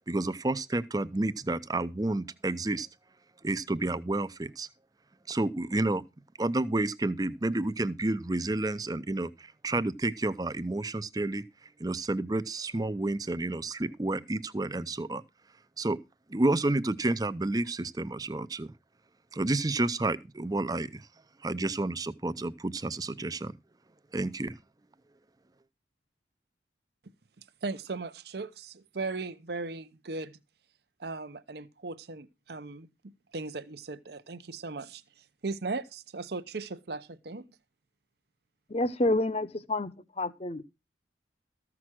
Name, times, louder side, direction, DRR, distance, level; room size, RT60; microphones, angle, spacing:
voice 1, 0.1-2.9 3.4-4.7 5.3-6.0 6.4-11.4 11.8-15.2 15.8-16.0 16.3-18.7 19.3-21.1 21.4-23.5 24.1-24.6, right 2 dB, 20° right, 0.5 m, -30 dB
voice 2, 27.6-30.4 31.0-32.9 33.3-37.5, right 3 dB, 60° right, 0.7 m, -37 dB
voice 3, 38.7-39.9 40.2-40.6, left 2 dB, 35° left, 0.8 m, -28 dB
14.5 x 6.0 x 6.1 m
head